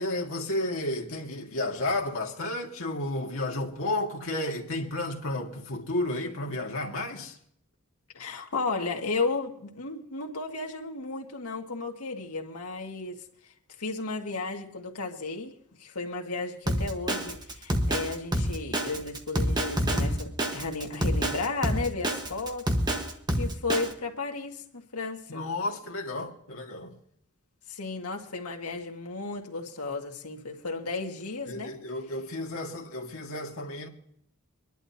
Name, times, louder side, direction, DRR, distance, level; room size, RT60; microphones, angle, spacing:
voice 1, 0.0-7.4 25.3-26.9 31.5-33.9, left 2 dB, 65° left, 2.2 m, -32 dB
voice 2, 8.1-13.2 13.8-22.7 23.3-25.4 27.7-31.7, left 3 dB, 90° left, 1.9 m, -34 dB
Drum kit, 16.7-23.9, right 1 dB, 20° right, 1.4 m, -27 dB
25.0 x 11.5 x 2.9 m
head